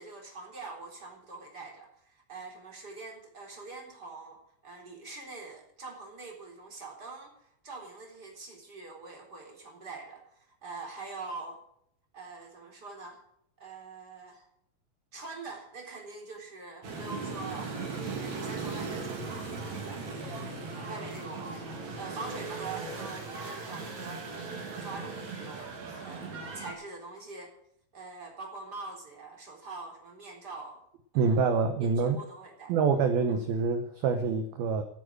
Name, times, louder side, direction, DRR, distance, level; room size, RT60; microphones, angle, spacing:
voice 1, 0.0-11.6 12.1-13.2 13.6-14.5 15.1-17.7 18.2-20.3 20.9-21.6 22.0-27.5 27.9-30.8 31.1-31.4 31.8-32.7 33.3-33.4, right 3 dB, 20° right, 0 dB, 3.6 m, -44 dB
sound 1, 16.8-26.7, right 4 dB, 40° right, 3.7 m, -38 dB
voice 2, 31.2-32.2 32.7-34.8, right 5 dB, 75° right, 7 dB, 2.3 m, -26 dB
16.0 x 9.1 x 6.3 m, 0.73 s
omnidirectional pair, 5.8 m